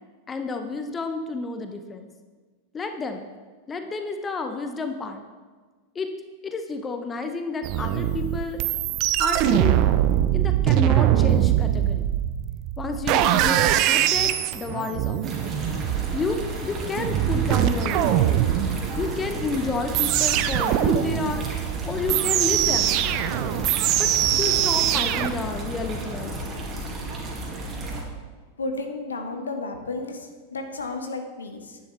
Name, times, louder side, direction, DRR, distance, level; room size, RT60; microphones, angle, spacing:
voice 1, 0.3-2.1 2.7-3.2 3.7-5.2 5.9-6.1 6.4-8.6 9.2-9.8 10.3-12.1 12.8-15.4 16.1-18.3 19.0-21.5 21.8-23.0 24.0-24.1 24.4-26.6, left 3 dB, 20° left, 6 dB, 0.8 m, -30 dB
sound 1, 7.6-25.3, right 12 dB, 40° right, 0.5 m, -23 dB
sound 2, 15.2-28.0, right 1 dB, 25° right, 2.2 m, -33 dB
voice 2, 28.6-31.8, left 3 dB, 70° left, 5 dB, 1.1 m, -32 dB
10.0 x 10.0 x 3.3 m, 1.4 s
figure-of-eight pair, 90°, 0 cm